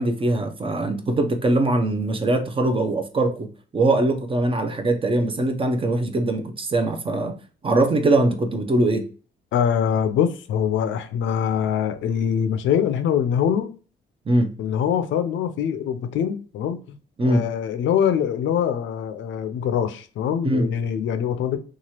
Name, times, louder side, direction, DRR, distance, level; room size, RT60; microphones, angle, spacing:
voice 1, 0.0-3.5 3.7-7.3 7.6-9.1 14.3-14.5 17.2-17.5 20.4-20.7, right 2 dB, 25° right, 0.5 m, -22 dB
voice 2, 9.5-13.7 14.6-17.0 17.2-21.6, left 8 dB, 75° left, 0.5 m, -23 dB
3.0 x 2.3 x 2.8 m
cardioid pair, 90°, 20 cm